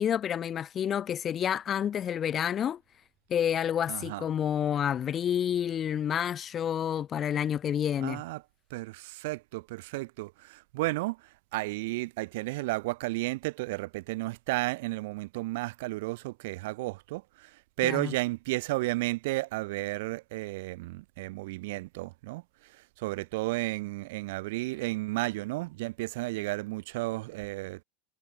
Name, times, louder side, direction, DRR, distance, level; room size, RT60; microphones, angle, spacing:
voice 1, 0.0-2.8 3.3-8.2 17.8-18.1, left 9 dB, 20° left, 0.7 m, -29 dB
voice 2, 3.9-4.2 8.0-8.4 8.7-27.8, right 21 dB, 60° right, 0.9 m, -33 dB
supercardioid pair, 170°, 0 cm